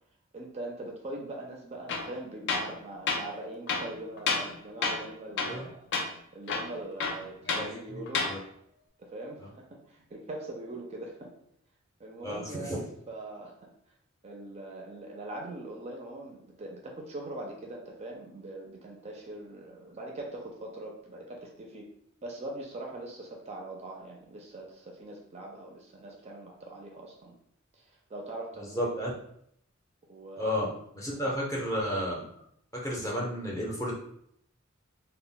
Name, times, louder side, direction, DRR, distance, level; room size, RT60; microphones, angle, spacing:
voice 1, 0.3-8.3 9.0-11.3 12.0-13.7 14.2-21.9 22.2-27.4 27.7-28.9 30.1-30.6 31.2-31.4, right 2 dB, 30° right, -1 dB, 0.4 m, -42 dB
Tools, 1.9-2.1 2.5-2.7 3.1-3.2 3.7-4.5 4.8-5.1 5.4-5.6 5.9-6.1 6.5-7.7 8.1-8.3, left 4 dB, 60° left, 0.4 m, -30 dB
voice 2, 7.6-8.4 12.2-12.8 28.8-29.1 30.4-30.7 30.9-32.2 32.7-34.0, equal, 15° left, -3 dB, 0.6 m, -32 dB
2.2 x 2.0 x 3.7 m, 0.70 s
head